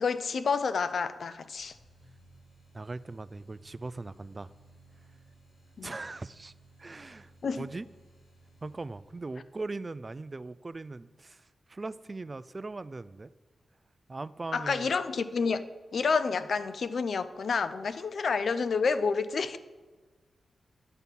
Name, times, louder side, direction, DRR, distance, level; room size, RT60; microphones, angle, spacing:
voice 1, 0.0-1.7 5.8-5.9 7.4-7.7 14.5-15.7 15.9-19.6, left 5 dB, 70° left, 13 dB, 0.5 m, -29 dB
sound 1, 1.4-9.4, right 2 dB, 85° left, 1.9 m, -59 dB
voice 2, 2.7-4.5 5.8-6.5 6.8-7.9 8.6-13.3 14.1-14.9, right 3 dB, 40° right, 17 dB, 0.3 m, -40 dB
10.5 x 4.1 x 7.1 m, 1.3 s
supercardioid pair, 40°, 0 cm